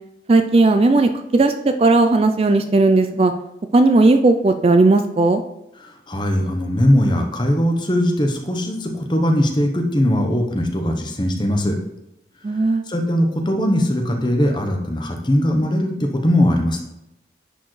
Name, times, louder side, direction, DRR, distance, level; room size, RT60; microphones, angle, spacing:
voice 1, 0.3-1.5 1.8-3.3 3.7-5.4 12.4-12.8, right 2 dB, 30° right, 7 dB, 0.3 m, -15 dB
voice 2, 5.8-11.7 12.9-16.8, equal, 25° left, 3 dB, 0.9 m, -20 dB
9.9 x 4.5 x 3.2 m, 0.87 s
head